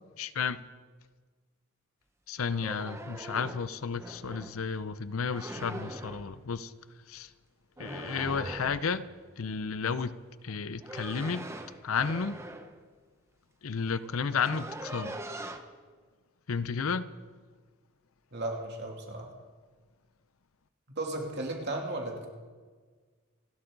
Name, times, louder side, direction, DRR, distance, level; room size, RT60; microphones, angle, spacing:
voice 1, 0.2-0.6 2.3-6.7 7.1-7.3 7.8-9.1 9.4-10.1 10.4-11.5 11.8-12.4 13.6-15.2 16.5-17.1, left 5 dB, 75° left, 0.6 m, -32 dB
sound 1, 2.5-4.6 5.3-6.3 7.8-9.0 10.5-12.8 13.6-13.7 14.0-15.6, right 1 dB, 15° right, 0.9 m, -42 dB
voice 2, 18.3-19.3 20.9-22.3, right 2 dB, 50° right, 2.9 m, -35 dB
28.5 x 11.5 x 4.0 m
head